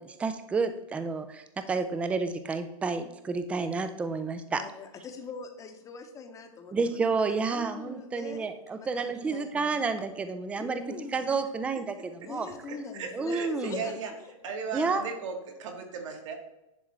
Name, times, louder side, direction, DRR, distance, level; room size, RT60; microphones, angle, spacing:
voice 1, 0.0-4.6 6.7-10.8 11.1-12.5 13.1-13.8 14.7-15.1, right 4 dB, 5° right, 10 dB, 0.3 m, -30 dB
voice 2, 4.5-6.8 7.5-8.5 8.8-9.7 10.5-11.4 12.2-14.1 14.9-15.0, left 4 dB, 20° left, 5 dB, 0.8 m, -42 dB
voice 3, 12.7-14.1 14.4-16.3, right 5 dB, 60° right, 3 dB, 1.6 m, -37 dB
10.5 x 3.5 x 3.2 m, 0.93 s
hypercardioid pair, 135°, 18 cm